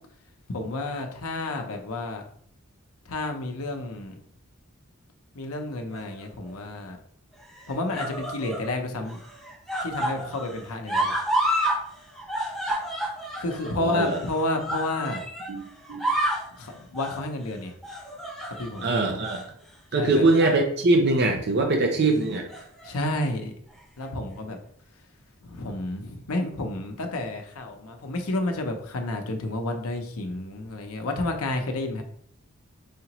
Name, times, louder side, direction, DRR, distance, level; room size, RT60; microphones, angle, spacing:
voice 1, 0.5-2.2 3.1-4.2 5.4-7.0 7.7-9.2 9.8-11.1 13.4-15.2 16.6-17.7 18.6-18.8 20.0-20.2 22.8-23.5 24.0-24.6 25.5-32.0, left 2 dB, 85° left, 4 dB, 0.7 m, -30 dB
sound 1, 5.9-6.5 7.4-8.7 9.0-11.8 12.1-15.5 15.8-16.5 16.9-17.2 17.8-18.9 19.2-19.4 20.1-20.6 20.9-21.1 22.2-22.9 23.8-23.9, right 1 dB, ahead, 0.9 m, -30 dB
voice 2, 13.8-14.2 15.5-16.0 18.8-19.5 19.9-22.5, right 2 dB, 50° right, 3 dB, 0.5 m, -22 dB
4.9 x 2.9 x 2.9 m, 0.63 s
head